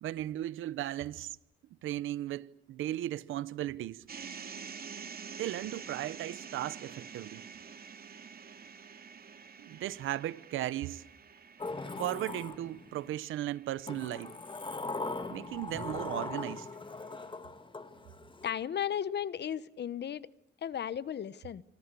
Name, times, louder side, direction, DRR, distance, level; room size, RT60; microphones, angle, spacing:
voice 1, 0.0-1.4 1.8-4.0 5.4-7.4 9.6-11.0 12.0-14.4 15.3-16.7, right 13 dB, 90° right, 1.0 m, -36 dB
sound 1, 4.1-16.2, right 6 dB, 50° right, 2.8 m, -48 dB
Sliding door, 11.6-13.1 13.9-18.5, left 3 dB, 25° left, 2.3 m, -40 dB
voice 2, 18.4-20.3 20.6-21.6, left 9 dB, 60° left, 1.1 m, -35 dB
26.0 x 25.5 x 8.5 m
cardioid pair, 80°, 20 cm